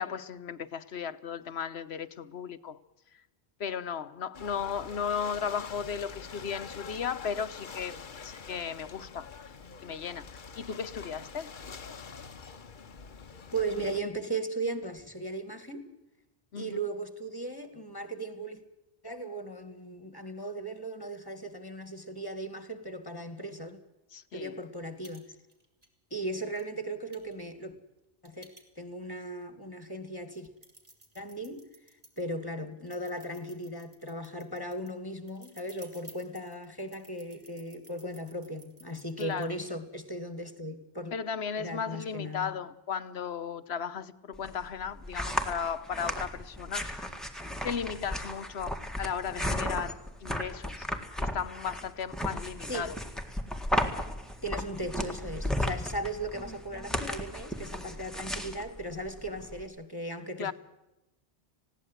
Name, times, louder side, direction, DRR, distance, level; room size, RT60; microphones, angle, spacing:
voice 1, 0.0-2.8 3.6-7.9 8.2-9.5 9.8-10.2 10.6-11.5 16.5-16.8 24.1-24.6 39.2-39.5 41.1-47.1 47.6-50.9 51.2-53.0 60.4-60.5, left 7 dB, 80° left, 1.2 m, -35 dB
Ocean / Boat Water vehicle, 4.3-14.0, left 5 dB, 50° left, 1.1 m, -45 dB
voice 2, 13.5-15.8 16.5-18.6 19.0-23.8 24.3-25.3 26.1-27.7 28.2-28.5 28.8-30.5 31.2-31.6 32.2-41.1 41.6-42.6 52.7-52.9 54.4-60.5, right 1 dB, 20° left, 2.1 m, -37 dB
sound 1, 24.6-24.7 25.0-25.2 25.5-25.9 26.6-26.7 27.1-29.1 29.6-29.7 30.2-32.2 32.8-39.4, right 1 dB, 35° right, 3.2 m, -55 dB
sound 2, 44.3-59.7, equal, ahead, 1.9 m, -35 dB
20.5 x 16.5 x 7.9 m
omnidirectional pair, 1.1 m